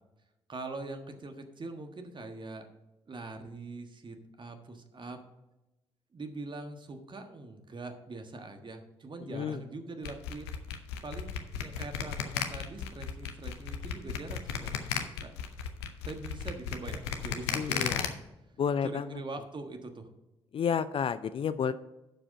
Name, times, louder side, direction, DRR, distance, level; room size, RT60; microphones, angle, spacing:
voice 1, 0.5-2.7 3.1-5.2 6.1-10.5 11.0-11.3 11.6-15.3 16.0-18.1 18.8-20.1, right 3 dB, 35° right, 5 dB, 1.4 m, -43 dB
voice 2, 9.3-9.6 17.5-18.1 18.6-19.2 20.5-21.7, left 7 dB, 45° left, 13 dB, 0.5 m, -31 dB
sound 1, 10.0-18.1, left 8 dB, 80° left, 0.7 m, -34 dB
11.5 x 4.9 x 5.2 m, 0.98 s
figure-of-eight pair, 40°, 13 cm